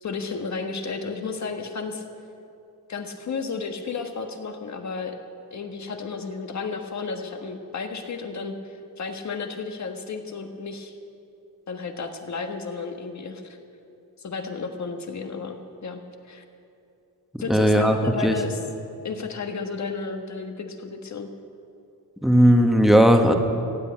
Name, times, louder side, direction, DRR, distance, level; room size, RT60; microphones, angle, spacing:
voice 1, 0.0-2.0 2.9-5.2 5.5-10.9 11.7-13.6 14.2-16.4 17.4-18.6 19.0-21.3, left 4 dB, 50° left, 5 dB, 1.4 m, -32 dB
voice 2, 17.5-18.0 18.2-18.3 22.2-23.3, equal, ahead, 4 dB, 1.3 m, -16 dB
15.5 x 8.4 x 8.6 m, 2.6 s
cardioid pair, 100°, 37 cm